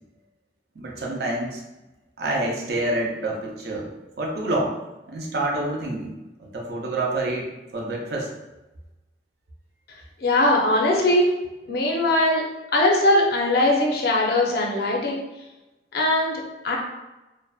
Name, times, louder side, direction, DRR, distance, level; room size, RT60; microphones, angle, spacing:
voice 1, 0.8-1.6 2.2-3.9 4.2-4.7 5.1-6.1 6.4-8.3, right 2 dB, 60° right, -2 dB, 0.5 m, -27 dB
voice 2, 10.2-11.3 11.7-12.4 12.7-15.2 15.9-16.8, left 1 dB, 55° left, -1 dB, 0.5 m, -20 dB
2.5 x 2.1 x 2.3 m, 1.0 s
head